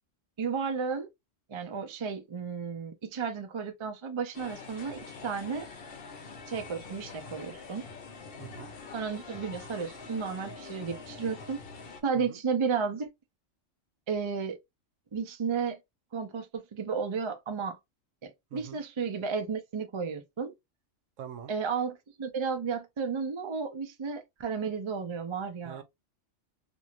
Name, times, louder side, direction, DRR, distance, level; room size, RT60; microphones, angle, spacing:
voice 1, 0.4-1.1 1.5-5.7 6.5-7.9 8.9-11.6 12.0-13.1 14.1-14.6 15.1-15.8 16.1-17.8 18.2-20.5 21.5-25.8, right 5 dB, 50° right, 0.3 m, -33 dB
sound 1, 4.3-12.0, left 4 dB, 55° left, 0.8 m, -45 dB
voice 2, 8.4-8.7 12.1-12.4 18.5-18.8 21.2-21.5 25.6-25.8, right 9 dB, 75° right, 1.0 m, -44 dB
3.0 x 2.6 x 2.4 m
omnidirectional pair, 1.4 m